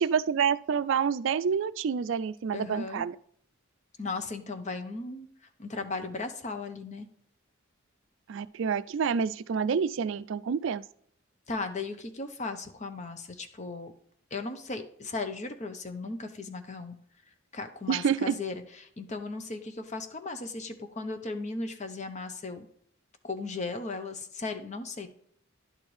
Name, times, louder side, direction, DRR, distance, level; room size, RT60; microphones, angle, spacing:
voice 1, 0.0-3.2 8.3-10.8 17.9-18.3, right 6 dB, 60° right, 16 dB, 0.3 m, -28 dB
voice 2, 2.5-3.0 4.0-5.3 5.6-7.1 11.5-13.9 14.3-16.9 17.5-22.7 23.2-25.1, left 3 dB, 35° left, 7 dB, 0.8 m, -36 dB
11.5 x 4.4 x 3.2 m, 0.64 s
head